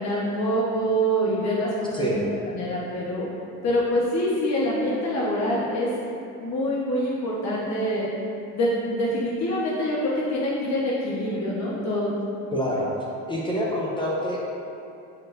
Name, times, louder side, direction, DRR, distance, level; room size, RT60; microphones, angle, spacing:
voice 1, 0.0-2.2 2.5-3.3 3.6-5.9 6.4-8.1 8.5-12.1, equal, 45° left, -6 dB, 1.2 m, -25 dB
voice 2, 12.5-12.9 13.3-14.4, equal, 15° left, -5 dB, 0.9 m, -26 dB
9.3 x 4.5 x 2.6 m, 2.8 s
supercardioid pair, 95°, 37 cm